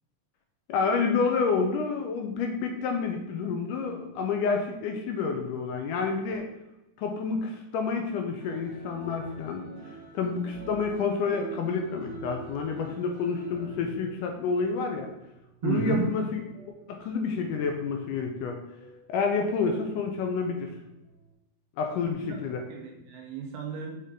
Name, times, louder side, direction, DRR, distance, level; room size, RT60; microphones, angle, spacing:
voice 1, 0.7-6.5 7.0-9.6 10.1-15.1 15.6-16.4 16.9-18.6 19.1-20.7 21.8-22.6, left 5 dB, 80° left, 3 dB, 2.1 m, -29 dB
sound 1, 8.4-18.5 18.8-19.3 19.5-21.3, right 2 dB, 25° right, 2.3 m, -47 dB
voice 2, 15.6-16.0 22.2-22.4 22.7-24.0, right 7 dB, 70° right, 1 dB, 2.3 m, -32 dB
6.4 x 5.4 x 3.7 m, 0.93 s
omnidirectional pair, 4.1 m